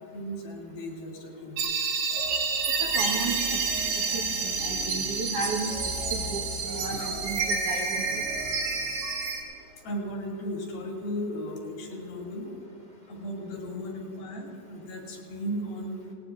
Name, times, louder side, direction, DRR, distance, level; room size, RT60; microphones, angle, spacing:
voice 1, 0.0-1.7 6.9-7.1 9.8-12.5 13.1-16.0, equal, 75° left, -1 dB, 4.4 m, -36 dB
sound 1, 1.6-9.4, right 5 dB, 90° right, 3.8 m, -29 dB
sound 2, 2.1-9.3, left 1 dB, 10° right, 2.6 m, -40 dB
voice 2, 2.7-3.6 4.1-8.2, right 3 dB, 70° right, 0 dB, 1.4 m, -34 dB
19.0 x 17.5 x 3.6 m, 3.0 s
omnidirectional pair, 4.3 m